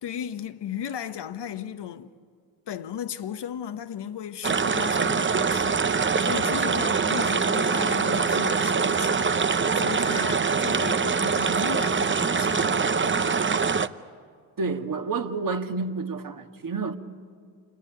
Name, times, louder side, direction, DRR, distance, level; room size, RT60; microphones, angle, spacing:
voice 1, 0.0-2.1 2.7-9.4 9.7-13.4, left 9 dB, 55° left, 1.2 m, -36 dB
sound 1, 4.4-13.9, right 5 dB, 25° right, 0.9 m, -24 dB
voice 2, 14.6-17.0, right 4 dB, 40° right, 1.9 m, -29 dB
26.5 x 19.5 x 9.3 m
hypercardioid pair, 45°, 50 cm